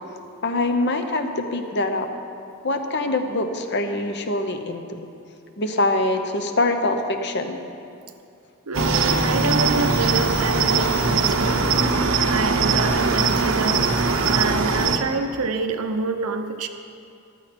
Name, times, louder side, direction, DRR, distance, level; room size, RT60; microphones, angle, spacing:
voice 1, 0.4-2.1 2.6-5.1 5.6-7.6, left 2 dB, 50° left, 6 dB, 0.9 m, -24 dB
Cricket, 8.7-15.0, right 4 dB, 60° right, 0.9 m, -21 dB
voice 2, 8.7-11.6 12.3-13.9 14.3-16.7, right 3 dB, 85° right, 7 dB, 0.9 m, -27 dB
14.5 x 12.5 x 4.4 m, 2.5 s
head